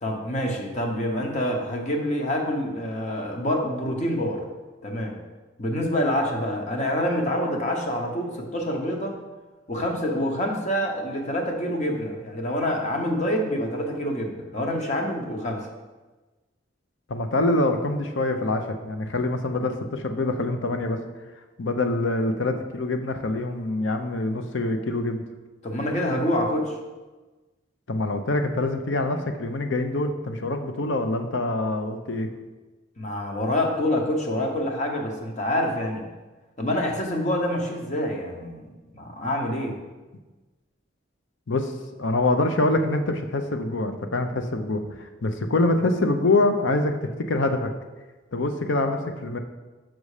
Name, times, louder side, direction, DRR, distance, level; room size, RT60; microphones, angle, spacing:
voice 1, 0.0-4.4 4.8-5.2 5.6-9.2 9.7-15.7 25.6-26.7 33.0-36.1 36.6-38.6 38.9-39.8, left 1 dB, 40° left, 2 dB, 1.0 m, -26 dB
voice 2, 17.1-21.0 21.6-25.2 27.9-32.3 41.5-41.7 42.0-46.9 47.3-47.7 48.3-49.4, left 2 dB, 80° left, 7 dB, 0.7 m, -25 dB
6.1 x 5.4 x 4.9 m, 1.2 s
head